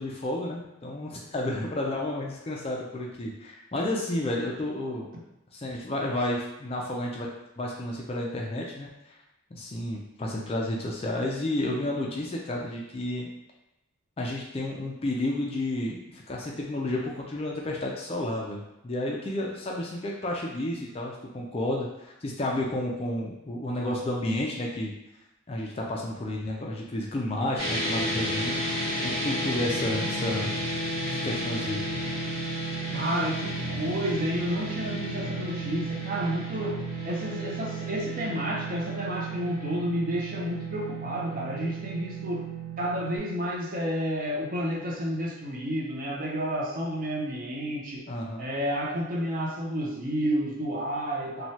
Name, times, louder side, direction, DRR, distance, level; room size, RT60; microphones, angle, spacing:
voice 1, 0.0-5.1 5.5-7.3 7.6-8.9 9.5-13.3 14.2-24.9 25.5-30.6 31.2-31.8 48.1-48.5, left 1 dB, 30° left, -2 dB, 0.3 m, -31 dB
sound 1, 27.6-43.2, right 1 dB, 85° right, 1.4 m, -32 dB
voice 2, 32.9-42.5 42.8-48.1 48.4-51.5, equal, 40° right, -2 dB, 0.5 m, -30 dB
3.0 x 2.2 x 2.7 m, 0.90 s
head